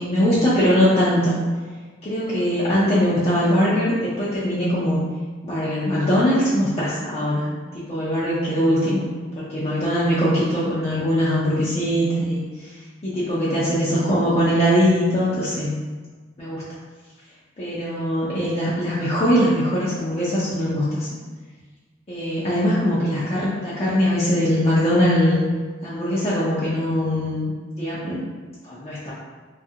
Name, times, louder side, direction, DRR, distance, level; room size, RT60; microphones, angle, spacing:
voice 1, 0.0-1.4 2.0-5.0 5.5-7.5 7.7-9.0 9.5-12.5 13.0-15.7 16.4-16.6 17.6-21.1 22.1-25.4 25.8-27.5 27.8-28.2 28.6-29.1, equal, 35° left, -9 dB, 0.5 m, -21 dB
3.1 x 2.4 x 2.8 m, 1.4 s
head